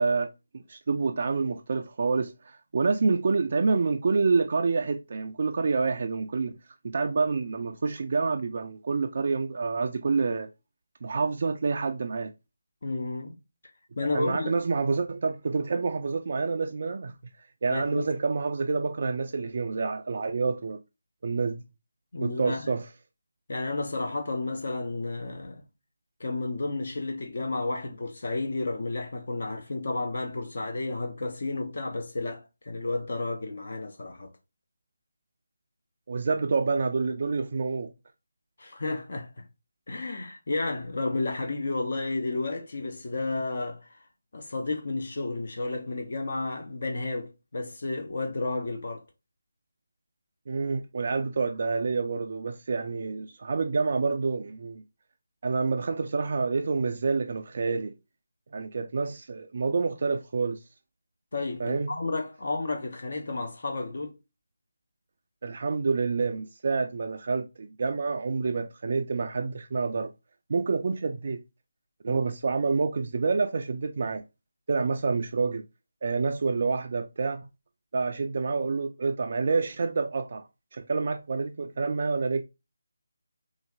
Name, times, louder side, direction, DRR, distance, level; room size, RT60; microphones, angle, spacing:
voice 1, 0.0-6.5 6.8-10.5 11.0-12.3 14.1-17.1 17.6-20.8 21.2-21.6 22.2-22.9 36.1-37.9 50.5-54.8 55.4-57.9 58.5-60.6 61.6-61.9 65.4-70.1 70.5-71.4 72.0-74.2 74.7-75.6 76.0-77.5 77.9-80.5 80.7-82.4, right 4 dB, 45° right, 0.3 m, -28 dB
voice 2, 12.8-13.4 14.0-14.5 17.7-18.1 22.1-22.8 23.5-25.6 26.2-34.3 38.6-39.4 39.9-43.9 44.3-49.0 61.3-64.2 72.1-72.2, left 3 dB, 50° left, 0.6 m, -32 dB
4.0 x 2.5 x 2.3 m
figure-of-eight pair, 155°, 0 cm